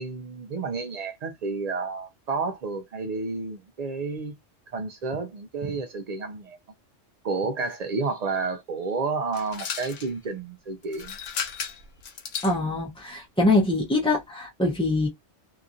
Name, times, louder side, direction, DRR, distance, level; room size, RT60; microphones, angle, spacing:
voice 1, 0.0-4.3 4.7-6.6 7.2-11.2, right 4 dB, 55° right, 0.4 m, -30 dB
sound 1, 9.3-10.1 10.8-12.6, left 7 dB, 85° left, 1.1 m, -34 dB
voice 2, 12.4-15.1, left 2 dB, 10° left, 0.4 m, -23 dB
2.8 x 2.5 x 2.4 m
omnidirectional pair, 1.2 m